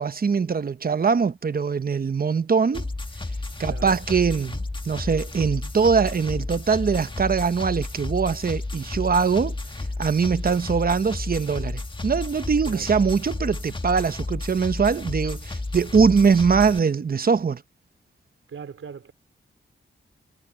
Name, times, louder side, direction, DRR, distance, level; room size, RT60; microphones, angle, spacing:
voice 1, 0.0-2.9 3.6-9.6 10.0-17.6, right 5 dB, 45° right, 0.9 m, -22 dB
sound 1, 2.7-16.8, left 2 dB, 25° left, 1.7 m, -32 dB
voice 2, 3.7-4.2 10.4-10.6 12.6-12.9 18.5-19.1, right 6 dB, 85° right, 3.9 m, -40 dB
wide cardioid pair, 85°, 21 cm